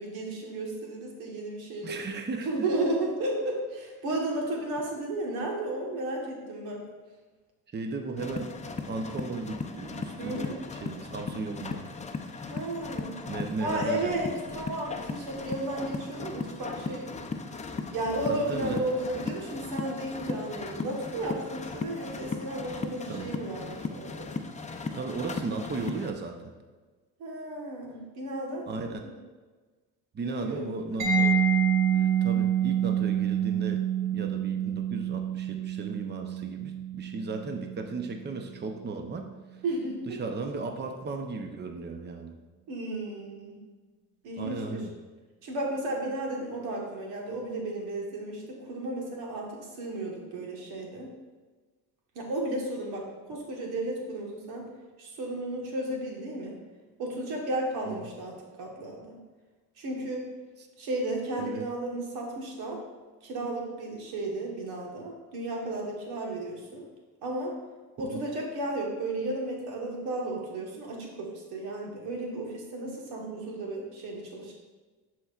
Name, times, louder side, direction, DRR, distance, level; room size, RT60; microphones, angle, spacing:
voice 1, 0.0-2.0 2.4-6.8 10.2-10.6 12.5-13.2 13.6-17.1 17.9-24.3 27.2-28.6 29.0-29.1 30.2-31.4 39.6-40.0 42.7-43.6 44.2-44.8 45.4-49.5 49.8-51.1 52.1-54.6 55.0-56.6 57.0-59.2 59.8-60.3 60.8-62.8 63.2-66.8 67.2-67.5 68.0-74.5, right 1 dB, 90° right, -1 dB, 1.5 m, -33 dB
voice 2, 1.8-2.7 7.7-11.9 13.3-14.1 18.3-18.9 23.1-23.3 24.9-26.5 28.7-29.1 30.1-31.4 31.9-39.3 40.1-42.4 44.4-44.9 57.8-58.1 60.6-60.7 61.4-61.6 68.0-68.2, right 3 dB, 30° right, 4 dB, 0.7 m, -36 dB
sound 1, 8.2-26.1, left 4 dB, 20° left, 0.5 m, -37 dB
Mallet percussion, 31.0-38.5, right 7 dB, 55° right, 1.6 m, -27 dB
10.5 x 4.5 x 2.4 m, 1.3 s
cardioid pair, 90°, 37 cm